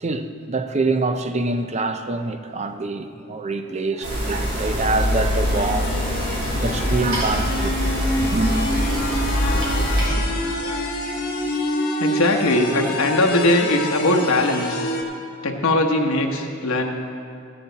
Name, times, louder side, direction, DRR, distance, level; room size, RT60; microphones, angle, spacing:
voice 1, 0.0-6.0 6.6-7.8 8.2-8.5, right 3 dB, 30° right, 0.5 m, -25 dB
voice 2, 3.6-4.1 6.7-6.9 9.0-11.0 12.0-14.9 15.4-16.8, left 2 dB, 75° left, 1.1 m, -22 dB
sound 1, 4.0-10.1, equal, 55° right, 3.0 m, -23 dB
sound 2, 5.5-15.0, left 1 dB, 45° left, 1.5 m, -27 dB
14.0 x 9.7 x 4.0 m
head